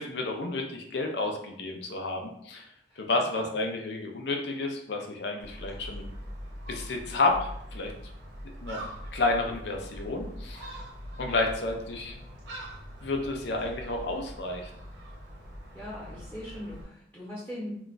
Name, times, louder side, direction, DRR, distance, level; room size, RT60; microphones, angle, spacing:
voice 1, 0.0-2.7 3.0-6.1 6.7-7.9 8.4-8.8 9.1-10.7 11.2-12.1 13.0-14.7, left 2 dB, 70° left, 3 dB, 0.5 m, -30 dB
voice 2, 2.9-3.6 15.7-17.7, equal, 10° left, -8 dB, 0.8 m, -41 dB
Gull seagull, 5.4-16.8, equal, 85° right, 0.8 m, -42 dB
2.4 x 2.2 x 3.9 m, 0.73 s
head